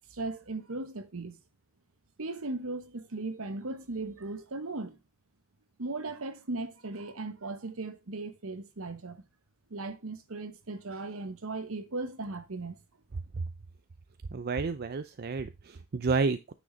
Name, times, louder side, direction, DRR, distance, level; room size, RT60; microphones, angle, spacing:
voice 1, 0.1-1.4 2.2-5.0 5.8-9.2 9.7-12.8, right 2 dB, 70° right, 1.1 m, -37 dB
voice 2, 14.3-16.5, right 4 dB, 45° right, 0.5 m, -30 dB
9.3 x 6.2 x 3.9 m
head